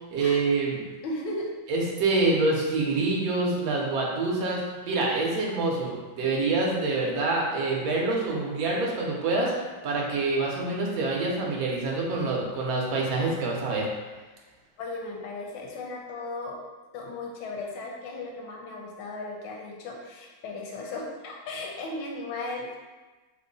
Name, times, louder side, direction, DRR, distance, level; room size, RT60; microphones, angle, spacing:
voice 1, 0.1-0.8 1.7-9.5 9.8-13.9, right 3 dB, 65° right, -2 dB, 0.9 m, -26 dB
voice 2, 1.0-1.5 14.8-16.6 16.9-22.8, left 2 dB, 85° left, 0 dB, 1.4 m, -36 dB
3.7 x 2.1 x 3.8 m, 1.2 s
omnidirectional pair, 2.2 m